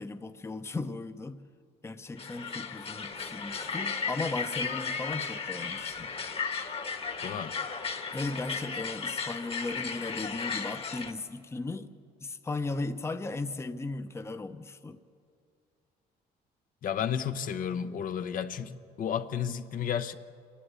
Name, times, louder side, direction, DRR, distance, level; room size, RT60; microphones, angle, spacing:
voice 1, 0.0-1.4 1.8-6.1 8.1-11.9 12.2-15.0, left 3 dB, 15° left, 0.8 m, -36 dB
sound 1, 2.2-11.1, left 5 dB, 35° left, 1.4 m, -35 dB
voice 2, 7.2-7.5 16.8-20.1, left 8 dB, 55° left, 0.9 m, -32 dB
27.5 x 11.5 x 8.4 m
cardioid pair, 110°, 17 cm